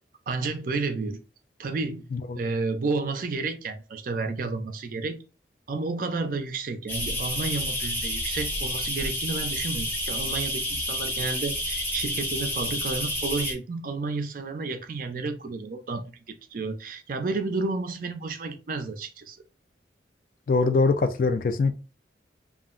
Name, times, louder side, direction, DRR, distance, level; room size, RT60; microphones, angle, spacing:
voice 1, 0.3-1.2 1.6-2.0 2.4-5.2 5.7-16.0 16.5-19.4, right 3 dB, 50° right, 0.4 m, -31 dB
sound 1, 6.9-13.5, left 1 dB, 10° left, 0.6 m, -30 dB
voice 2, 20.5-21.7, left 4 dB, 50° left, 0.3 m, -23 dB
2.4 x 2.0 x 3.6 m
head